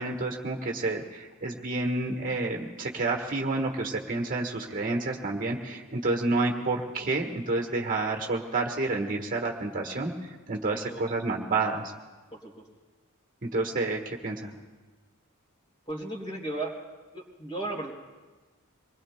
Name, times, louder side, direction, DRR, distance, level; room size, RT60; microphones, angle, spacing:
voice 1, 0.0-10.1 10.5-11.9 13.4-14.5, right 3 dB, 40° right, 2 dB, 1.4 m, -29 dB
voice 2, 10.7-11.1 12.3-12.6 15.9-16.8 17.1-18.0, right 2 dB, 25° left, -1 dB, 3.2 m, -36 dB
25.0 x 21.0 x 2.2 m, 1.3 s
head